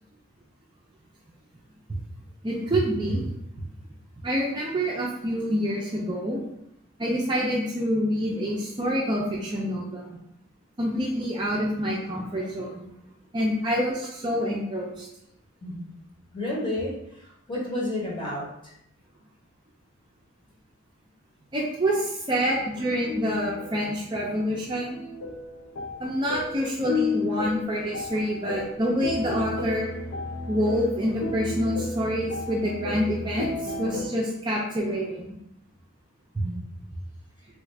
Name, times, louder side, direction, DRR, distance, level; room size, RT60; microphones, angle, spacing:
voice 1, 2.4-3.3 4.2-6.4 7.0-10.1 10.8-12.8 13.3-15.1 21.5-25.0 26.0-29.9 30.5-35.3, equal, 20° right, -3 dB, 0.4 m, -27 dB
voice 2, 15.6-15.9 16.3-18.7 36.4-36.6, left 1 dB, 20° left, -4 dB, 0.8 m, -31 dB
sound 1, 22.3-34.1, left 3 dB, 75° left, 0.5 m, -33 dB
3.4 x 2.4 x 3.1 m, 0.78 s
head